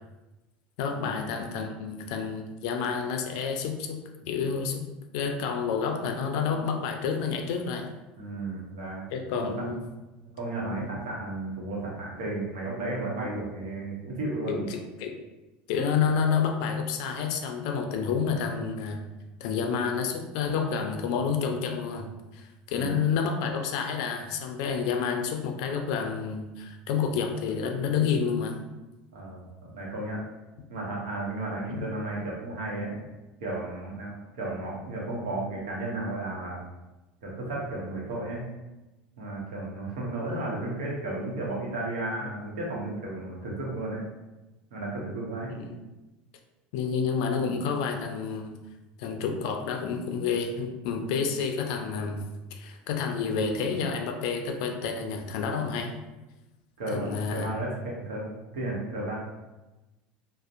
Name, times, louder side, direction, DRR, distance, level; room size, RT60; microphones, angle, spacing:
voice 1, 0.8-4.9 5.1-7.9 9.1-9.8 10.8-10.9 14.5-15.1 15.7-19.0 19.4-22.1 22.3-28.6 31.7-31.9 40.3-40.4 45.5-45.8 46.7-48.5 49.0-52.2 52.5-55.9 56.9-57.5, left 6 dB, 75° left, 4 dB, 0.4 m, -29 dB
voice 2, 8.2-9.0 9.3-9.7 10.2-14.7 22.7-23.0 29.1-30.2 30.7-33.0 33.4-36.6 37.2-38.4 39.2-44.0 44.7-45.5 56.8-59.2, right 2 dB, 85° right, -3 dB, 0.7 m, -33 dB
2.6 x 2.0 x 2.4 m, 1.1 s
supercardioid pair, 110°, 3 cm